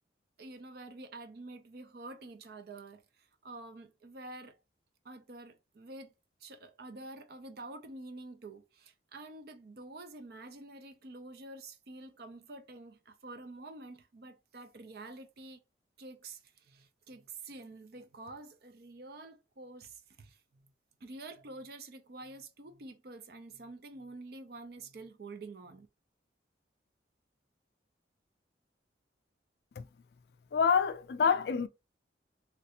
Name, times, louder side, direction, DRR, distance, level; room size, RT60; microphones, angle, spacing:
voice 1, 0.4-4.6 5.0-6.1 6.4-15.6 16.0-20.7 21.0-25.9, right 2 dB, 55° right, 0.5 m, -48 dB
voice 2, 30.5-31.7, left 6 dB, 55° left, 0.3 m, -27 dB
3.2 x 2.5 x 2.7 m
head